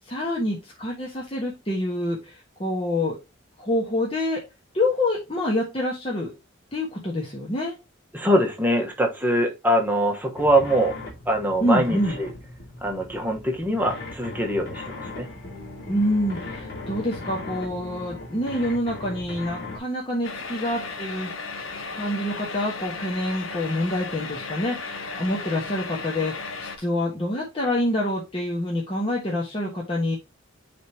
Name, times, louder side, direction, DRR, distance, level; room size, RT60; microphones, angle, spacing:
voice 1, 0.0-3.2 3.6-4.4 4.7-6.3 6.7-7.8 11.6-12.2 15.9-21.3 21.9-30.2, left 1 dB, 25° left, 1.3 m, -27 dB
voice 2, 8.1-11.0 11.3-12.3 12.8-15.3, right 1 dB, 10° right, 1.1 m, -23 dB
sound 1, 10.3-19.8, left 2 dB, 50° left, 2.4 m, -38 dB
sound 2, 20.2-26.8, left 4 dB, 70° left, 0.9 m, -35 dB
10.0 x 3.5 x 2.8 m
head